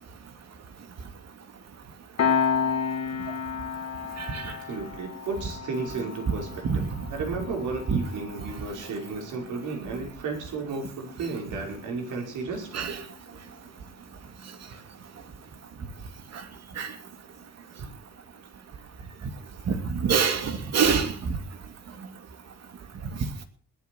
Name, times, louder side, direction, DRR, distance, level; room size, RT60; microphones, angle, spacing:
Piano, 2.2-13.3, left 6 dB, 65° left, 2.9 m, -33 dB
voice 1, 4.4-6.8 7.1-12.9, right 4 dB, 80° right, 2 dB, 5.6 m, -33 dB
voice 2, 19.7-21.1, right 6 dB, 60° right, 8 dB, 2.6 m, -24 dB
20.0 x 8.4 x 6.2 m, 0.41 s
cardioid pair, 90°, 30 cm